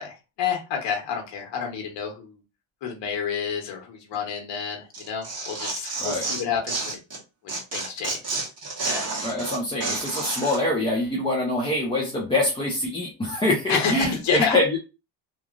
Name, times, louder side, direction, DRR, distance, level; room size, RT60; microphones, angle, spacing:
voice 1, 0.0-2.4 2.8-7.0 7.4-8.2 8.8-9.1 13.7-14.6, left 6 dB, 65° left, 2 dB, 1.2 m, -29 dB
Tearing, 4.9-7.2 7.5-10.6, right 3 dB, 35° right, 1.4 m, -30 dB
voice 2, 9.2-14.8, left 1 dB, 10° left, -3 dB, 0.5 m, -24 dB
3.0 x 2.4 x 2.4 m, 0.29 s
cardioid pair, 135°, 46 cm